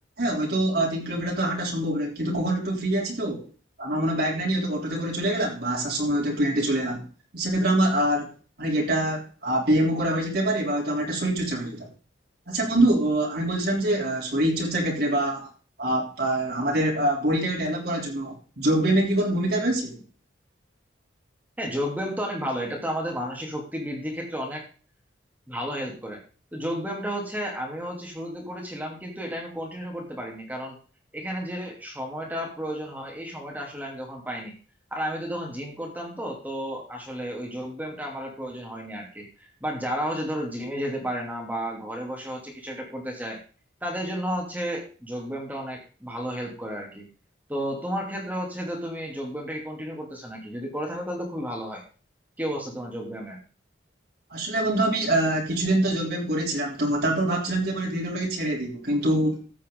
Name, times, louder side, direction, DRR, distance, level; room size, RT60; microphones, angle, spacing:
voice 1, 0.2-3.5 3.8-7.0 7.3-8.3 8.6-11.9 12.5-15.5 15.8-20.0 54.3-59.4, right 1 dB, 55° right, -2 dB, 3.3 m, -25 dB
voice 2, 21.6-24.6 25.5-26.2 26.5-30.8 31.1-34.5 34.9-43.4 43.8-47.0 47.5-51.8 52.4-53.4, equal, 10° right, 0 dB, 2.7 m, -32 dB
15.0 x 8.3 x 3.8 m, 0.37 s
head